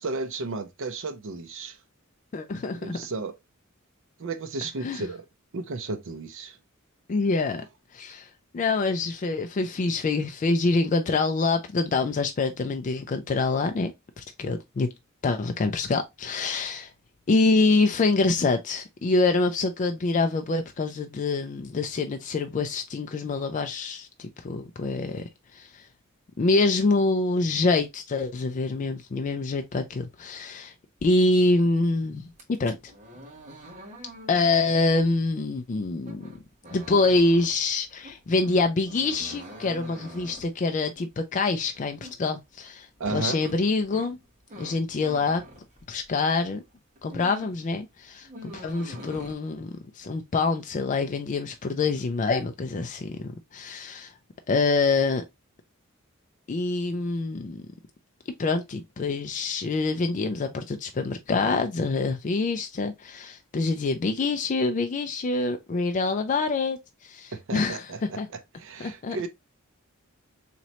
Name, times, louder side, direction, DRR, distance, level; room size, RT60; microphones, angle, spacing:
voice 1, 0.0-1.8 2.8-3.3 4.2-5.2 5.5-6.6 43.0-43.4 67.3-68.2 68.6-69.3, right 3 dB, 65° right, 0.6 m, -33 dB
voice 2, 2.3-3.0 4.8-5.0 7.1-7.6 7.9-8.3 8.5-13.9 14.2-14.9 15.2-16.9 17.3-25.2 25.5-25.9 26.4-30.7 31.0-32.8 34.3-36.3 36.7-44.2 44.6-45.4 45.9-46.6 47.0-49.7 50.0-54.1 54.5-55.2 56.5-57.6 58.4-67.9 68.2-68.3 68.8-69.2, left 3 dB, 35° left, 0.4 m, -26 dB
sound 1, 32.3-46.3 46.7-47.7 47.9-49.3, equal, 35° right, 1.2 m, -45 dB
4.2 x 3.1 x 2.8 m
head